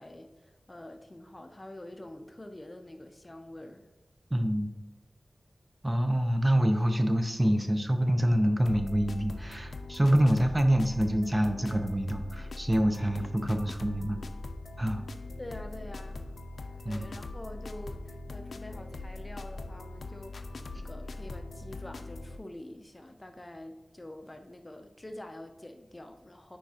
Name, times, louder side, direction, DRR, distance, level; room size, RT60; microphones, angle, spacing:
voice 1, 0.0-3.9 15.4-16.2 16.9-26.6, left 1 dB, 30° left, 6 dB, 0.6 m, -46 dB
voice 2, 4.3-4.7 5.8-14.2 14.8-15.1 16.8-17.1, equal, 20° right, 6 dB, 0.7 m, -26 dB
sound 1, 8.7-22.4, left 2 dB, 85° left, 0.4 m, -41 dB
9.0 x 4.6 x 2.9 m, 1.1 s
wide cardioid pair, 60°, 0 cm